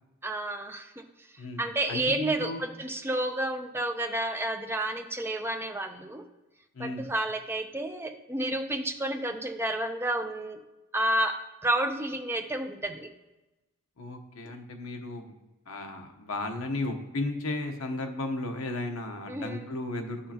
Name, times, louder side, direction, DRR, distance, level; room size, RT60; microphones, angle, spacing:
voice 1, 0.2-1.0 1.6-6.2 6.8-10.6 10.9-13.1 19.3-19.7, right 1 dB, 10° right, 5 dB, 0.5 m, -30 dB
voice 2, 1.4-2.6 6.7-7.1 14.0-15.3 15.7-20.3, left 2 dB, 75° left, 4 dB, 1.0 m, -34 dB
12.0 x 5.5 x 2.9 m, 1.0 s
head